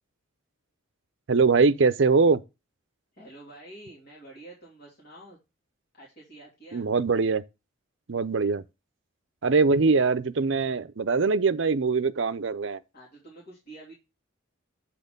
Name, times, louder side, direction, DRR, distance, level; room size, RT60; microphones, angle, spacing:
voice 1, 1.3-2.4 6.7-7.4 8.1-8.6 9.4-12.8, right 4 dB, 60° right, 0.5 m, -22 dB
voice 2, 3.1-5.4 5.9-6.9 12.9-13.9, right 2 dB, 45° left, 3.2 m, -48 dB
8.6 x 4.3 x 5.2 m
head